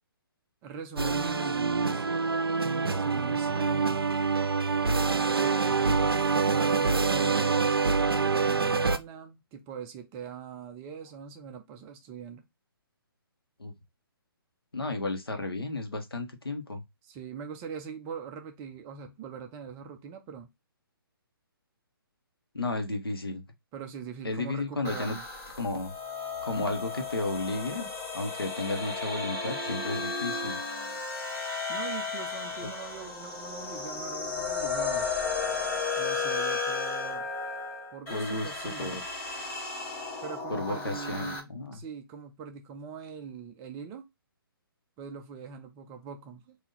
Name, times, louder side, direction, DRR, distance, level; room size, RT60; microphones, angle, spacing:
voice 1, 0.6-2.1 2.6-4.4 5.0-7.8 8.1-12.4 17.0-20.5 23.7-25.2 31.7-35.1 36.0-37.3 37.9-39.0 40.2-44.1 45.0-46.6, right 7 dB, 20° right, 0.6 m, -42 dB
sound 1, 1.0-9.0, right 4 dB, 80° right, 0.6 m, -26 dB
voice 2, 14.7-16.8 22.5-23.4 24.2-25.2 25.5-25.9 26.4-27.9 28.1-30.6 32.6-32.7 38.1-38.5 38.8-39.0 40.5-41.8, left 2 dB, 80° left, 1.3 m, -33 dB
sound 2, 24.8-41.4, left 4 dB, 15° left, 1.6 m, -34 dB
4.2 x 2.8 x 3.8 m
figure-of-eight pair, 135°, 12 cm